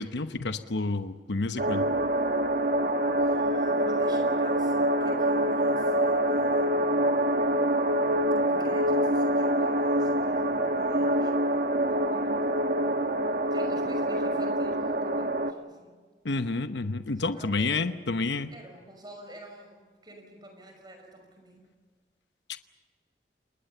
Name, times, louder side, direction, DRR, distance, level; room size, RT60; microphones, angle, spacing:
voice 1, 0.0-1.8 16.2-18.5, left 3 dB, 85° left, 9 dB, 1.0 m, -29 dB
sound 1, 1.6-15.5, right 1 dB, 55° right, 1.3 m, -25 dB
voice 2, 3.1-7.2 8.4-12.5 13.5-16.0 17.1-18.0 18.5-21.7, right 1 dB, 25° right, 3 dB, 5.6 m, -49 dB
29.0 x 20.5 x 6.8 m, 1.5 s
head